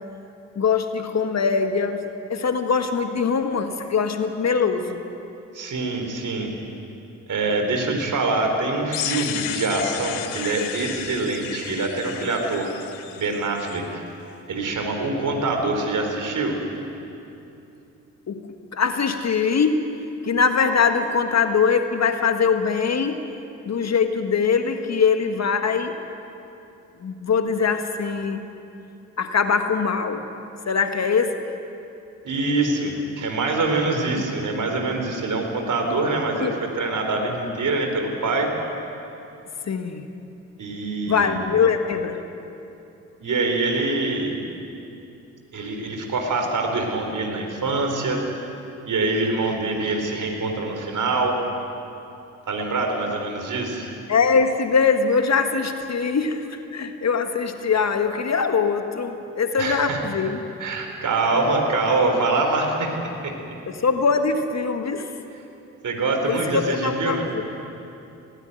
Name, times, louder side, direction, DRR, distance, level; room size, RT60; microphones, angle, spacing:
voice 1, 0.5-5.0 18.3-19.9 20.2-23.2 23.6-25.9 27.0-28.4 29.2-30.3 30.7-31.4 34.1-34.2 36.4-36.5 39.6-40.1 41.0-42.2 54.1-60.5 63.7-65.1 66.3-67.4, left 5 dB, 45° left, 7 dB, 1.6 m, -22 dB
voice 2, 5.5-6.5 7.3-12.7 13.2-14.0 14.5-16.6 32.2-38.5 40.6-41.4 43.2-44.4 45.5-48.2 48.9-51.3 52.5-53.9 59.6-60.0 60.6-62.9 63.2-63.3 65.8-67.2, right 3 dB, 50° right, 3 dB, 4.1 m, -24 dB
sound 1, 8.9-13.8, left 10 dB, 85° left, 1.0 m, -33 dB
19.0 x 17.0 x 9.2 m, 2.8 s
hypercardioid pair, 40°, 38 cm